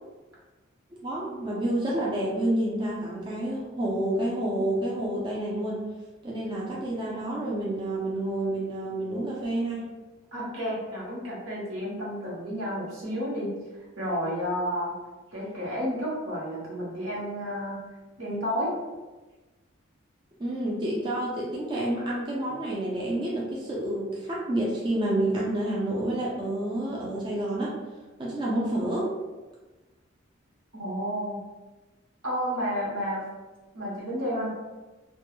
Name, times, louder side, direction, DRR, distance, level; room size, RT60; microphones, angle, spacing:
voice 1, 0.9-5.8 6.2-9.8 20.4-27.7 28.2-29.1, right 1 dB, 25° right, -5 dB, 0.4 m, -29 dB
voice 2, 10.3-13.5 14.0-14.9 15.3-17.8 18.2-18.7 30.7-31.4 32.2-33.2 33.7-34.5, equal, 85° right, -5 dB, 0.9 m, -31 dB
2.2 x 2.0 x 3.0 m, 1.2 s
head